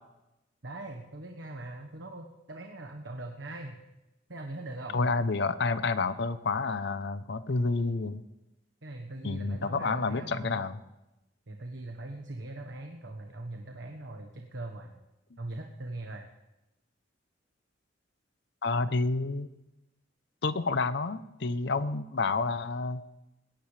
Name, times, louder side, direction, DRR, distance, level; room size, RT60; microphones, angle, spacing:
voice 1, 0.6-3.8 4.3-5.0 8.8-10.7 11.5-14.9 15.4-16.3, right 2 dB, 75° right, 3 dB, 1.3 m, -41 dB
voice 2, 4.9-8.2 9.2-10.8 18.6-19.5 20.4-23.0, left 3 dB, 60° left, 13 dB, 0.7 m, -29 dB
21.0 x 17.5 x 3.3 m, 0.96 s
head